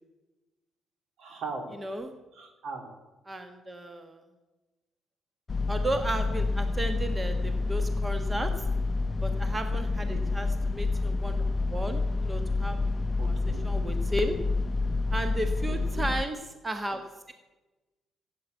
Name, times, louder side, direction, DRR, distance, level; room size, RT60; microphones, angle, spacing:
voice 1, 1.2-1.7 2.3-2.9 10.1-10.2 13.2-13.6 15.7-16.1, right 4 dB, 70° right, 4 dB, 3.1 m, -39 dB
voice 2, 1.7-2.1 3.3-4.2 5.7-8.5 9.2-12.8 13.1-14.4 15.1-17.3, right 1 dB, 20° right, 7 dB, 1.5 m, -34 dB
sound 1, 5.5-16.2, left 3 dB, 35° left, 0.5 m, -28 dB
14.5 x 8.5 x 9.2 m, 1.1 s
cardioid pair, 90°, 0 cm